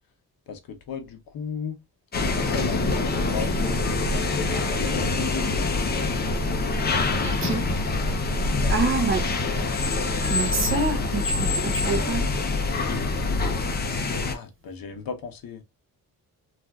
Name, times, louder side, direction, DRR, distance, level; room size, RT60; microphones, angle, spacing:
voice 1, 0.5-1.8 2.2-4.3 4.7-6.3 8.3-9.1 14.1-15.6, left 6 dB, 65° left, 0.8 m, -37 dB
sound 1, 2.1-14.3, left 3 dB, 25° left, 0.6 m, -25 dB
voice 2, 7.2-7.6 8.7-9.2 10.3-12.2, right 3 dB, 35° right, 0.7 m, -26 dB
3.5 x 2.5 x 2.2 m
wide cardioid pair, 165°, 37 cm